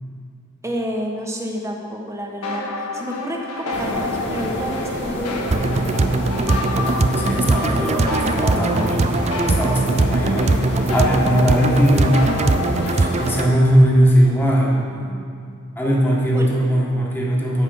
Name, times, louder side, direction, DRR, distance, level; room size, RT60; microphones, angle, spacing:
voice 1, 0.6-5.8 16.3-16.5, equal, 15° right, 0 dB, 1.3 m, -29 dB
sound 1, 2.4-13.7, left 2 dB, 70° left, 1.5 m, -30 dB
sound 2, 3.7-13.4, equal, 55° left, 2.2 m, -29 dB
sound 3, 5.5-13.5, right 3 dB, 30° right, 0.4 m, -21 dB
voice 2, 6.8-9.1 9.4-10.5 10.9-12.2 12.9-15.2 15.5-17.6, equal, 10° left, -4 dB, 1.8 m, -19 dB
13.5 x 5.7 x 7.9 m, 2.3 s
head